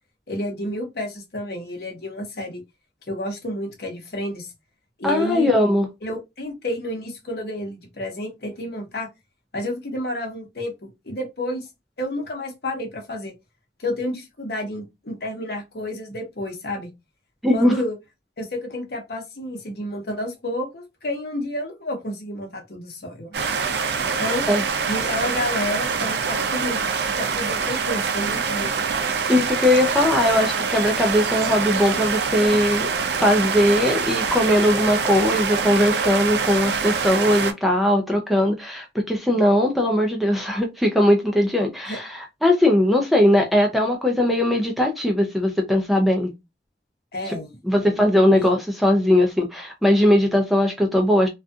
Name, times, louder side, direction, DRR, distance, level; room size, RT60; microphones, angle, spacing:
voice 1, 0.3-2.6 3.1-4.5 5.0-5.5 6.0-9.1 9.5-11.7 12.0-13.3 13.8-16.9 17.5-18.0 18.4-23.5 24.2-24.4 24.9-28.9 41.9-42.0 47.1-47.6 47.8-48.0 48.3-48.5, left 1 dB, 60° left, 0.9 m, -30 dB
voice 2, 5.0-5.9 17.4-17.7 24.5-24.6 29.3-32.9 33.2-46.3 47.3-47.4 47.6-51.3, left 1 dB, ahead, 0.4 m, -19 dB
sound 1, 23.3-37.5, right 5 dB, 70° right, 0.4 m, -25 dB
2.6 x 2.4 x 2.3 m
head